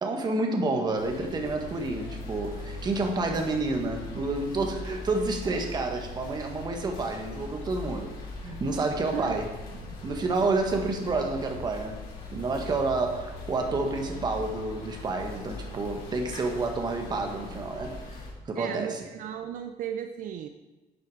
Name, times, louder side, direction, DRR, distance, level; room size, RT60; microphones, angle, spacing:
voice 1, 0.0-8.1 8.4-9.5 9.8-12.0 12.3-18.2 18.5-19.0, right 3 dB, 25° right, 3 dB, 1.6 m, -29 dB
sound 1, 1.0-18.3, left 2 dB, 90° left, 4.1 m, -41 dB
voice 2, 9.1-9.5 18.6-20.5, right 9 dB, 60° right, 7 dB, 0.6 m, -35 dB
11.5 x 8.4 x 4.9 m, 1.2 s
cardioid pair, 165°, 15 cm